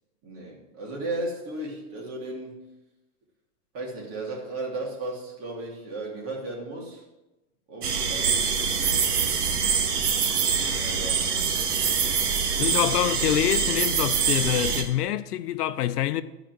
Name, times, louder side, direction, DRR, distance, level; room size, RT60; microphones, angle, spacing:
voice 1, 0.2-2.7 3.7-7.0 7.7-9.6 10.7-11.3, right 2 dB, 30° right, 3.1 m, -35 dB
sound 1, 7.8-14.8, right 6 dB, 85° right, 1.8 m, -25 dB
voice 2, 12.6-16.2, left 12 dB, 90° left, 0.7 m, -26 dB
13.0 x 5.0 x 6.2 m
supercardioid pair, 150°, 46 cm